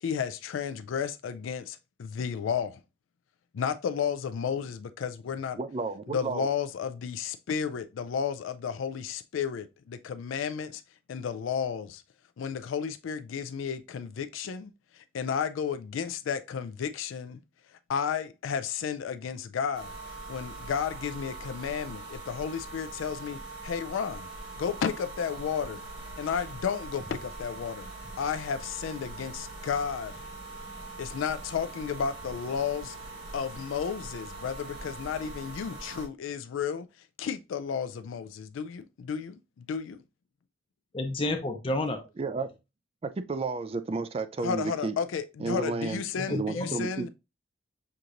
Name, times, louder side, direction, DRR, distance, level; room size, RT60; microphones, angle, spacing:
voice 1, 0.0-2.8 3.5-5.6 6.1-10.8 11.1-12.0 12.4-17.4 17.9-24.3 24.6-25.8 26.2-27.9 28.2-30.2 31.0-33.0 33.3-36.9 37.2-40.0 44.4-47.1, left 7 dB, 80° left, 0.3 m, -32 dB
voice 2, 5.6-6.5 42.2-42.5 43.0-44.9 45.4-46.0 46.3-47.1, right 4 dB, 30° right, 0.3 m, -32 dB
sound 1, 19.7-36.1, right 2 dB, 50° right, 1.7 m, -42 dB
voice 3, 40.9-42.0 46.2-46.7, left 1 dB, 25° left, 0.5 m, -30 dB
6.4 x 2.9 x 2.5 m
head